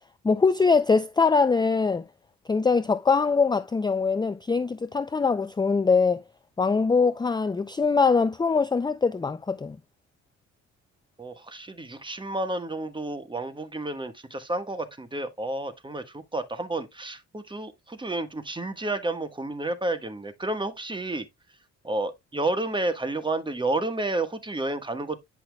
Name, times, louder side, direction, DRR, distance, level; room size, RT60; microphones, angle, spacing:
voice 1, 0.2-2.0 2.5-6.2 6.6-9.8, left 4 dB, 15° left, 0.5 m, -22 dB
voice 2, 11.2-21.3 21.8-25.2, right 2 dB, 15° right, 1.4 m, -31 dB
10.0 x 5.7 x 2.3 m
cardioid pair, 90°, 30 cm